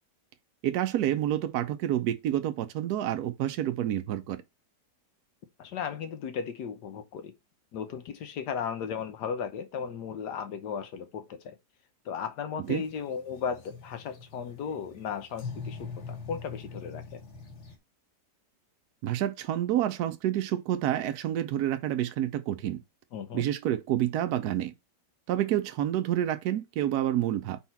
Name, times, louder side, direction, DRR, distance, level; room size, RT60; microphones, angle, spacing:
voice 1, 0.6-4.4 12.7-12.8 19.0-22.8 23.3-24.7 25.3-27.6, right 12 dB, 70° right, 1.0 m, -28 dB
voice 2, 5.6-7.3 7.7-11.5 12.0-17.2 23.1-23.4, left 7 dB, 75° left, 1.5 m, -36 dB
sound 1, 12.6-17.8, left 5 dB, 45° left, 1.6 m, -43 dB
4.7 x 4.2 x 5.7 m
omnidirectional pair, 1.8 m